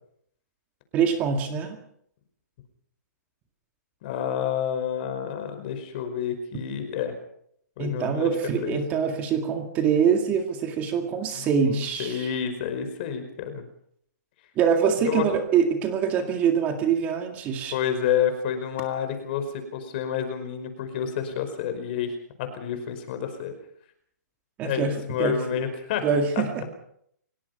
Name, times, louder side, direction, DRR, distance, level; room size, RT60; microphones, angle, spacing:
voice 1, 0.9-1.8 7.8-12.4 14.6-17.7 24.6-25.4 26.0-26.6, right 7 dB, 15° right, 5 dB, 2.0 m, -24 dB
voice 2, 4.0-7.1 7.8-8.3 8.6-8.8 11.6-13.6 15.0-15.2 17.7-19.4 19.7-23.5 24.6-26.0, left 8 dB, 30° left, 7 dB, 5.0 m, -29 dB
29.5 x 18.0 x 5.5 m, 0.68 s
hypercardioid pair, 170°, 10 cm